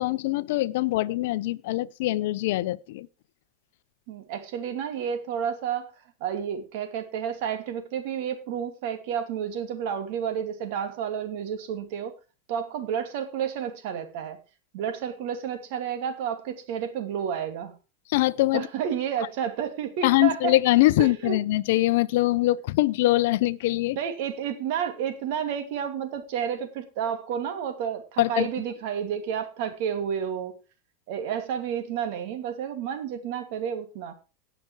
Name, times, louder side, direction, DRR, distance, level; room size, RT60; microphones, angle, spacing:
voice 1, 0.0-3.1 18.1-18.7 20.0-24.0 28.2-28.5, left 17 dB, 70° left, 0.6 m, -23 dB
voice 2, 4.1-5.9 6.2-12.1 12.5-14.4 14.7-17.8 18.5-20.6 21.0-21.4 24.0-30.5 31.1-34.1, right 8 dB, 65° right, 2.6 m, -31 dB
17.5 x 5.9 x 4.8 m
hypercardioid pair, 105°, 0 cm